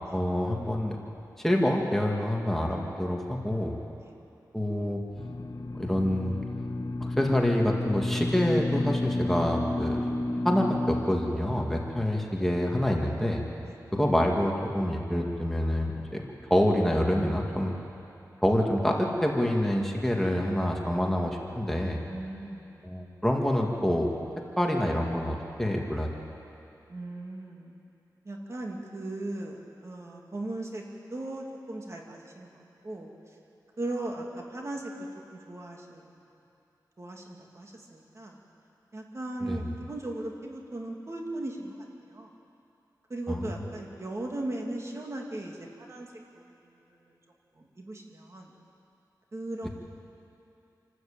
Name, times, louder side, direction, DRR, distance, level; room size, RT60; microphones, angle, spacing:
voice 1, 0.1-1.0 1.4-3.8 4.5-5.0 5.7-6.4 7.0-10.1 10.4-13.4 13.9-17.8 18.4-22.0 22.8-24.1 24.6-26.1 39.5-39.6 43.3-43.4, left 1 dB, 5° left, -1 dB, 2.1 m, -27 dB
sound 1, 5.2-11.0, left 2 dB, 60° left, 1.0 m, -31 dB
voice 2, 22.1-22.9 26.9-27.7 28.2-30.8 31.1-33.4 33.8-34.9 35.3-36.1 37.0-38.4 38.9-42.3 43.1-46.1 46.3-46.4 46.9-47.1 47.5-48.5 49.3-49.7, right 2 dB, 40° right, 0 dB, 2.6 m, -38 dB
27.5 x 13.0 x 8.7 m, 2.8 s
wide cardioid pair, 90°, 7 cm